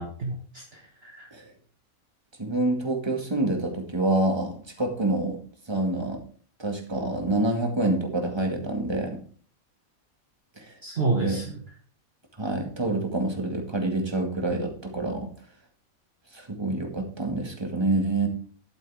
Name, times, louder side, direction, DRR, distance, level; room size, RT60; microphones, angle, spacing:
voice 1, 0.0-1.3 10.8-11.6, right 3 dB, 45° right, 0 dB, 1.7 m, -30 dB
voice 2, 2.4-5.4 5.7-6.2 6.6-9.2 10.6-10.8 11.2-11.4 12.4-15.3 16.3-18.3, right 2 dB, 20° right, 2 dB, 2.2 m, -27 dB
11.5 x 8.4 x 3.7 m, 0.44 s
omnidirectional pair, 1.5 m